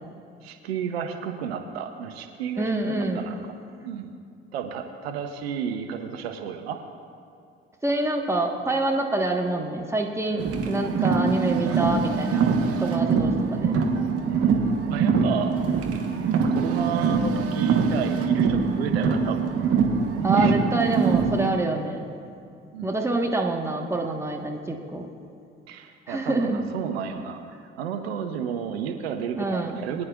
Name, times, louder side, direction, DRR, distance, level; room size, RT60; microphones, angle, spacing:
voice 1, 0.4-3.4 3.8-4.1 4.5-6.8 14.3-15.6 16.5-19.4 20.3-20.5 22.7-22.9 25.7-30.1, right 7 dB, 75° right, 6 dB, 0.8 m, -32 dB
voice 2, 2.6-3.3 7.8-12.5 12.8-13.7 20.2-22.1 22.8-25.1 26.1-26.6 29.4-29.8, right 2 dB, 10° right, 1 dB, 1.4 m, -26 dB
Car, 10.4-21.5, right 5 dB, 50° right, 1.3 m, -23 dB
22.0 x 9.8 x 2.5 m, 2.4 s
figure-of-eight pair, 50°, 31 cm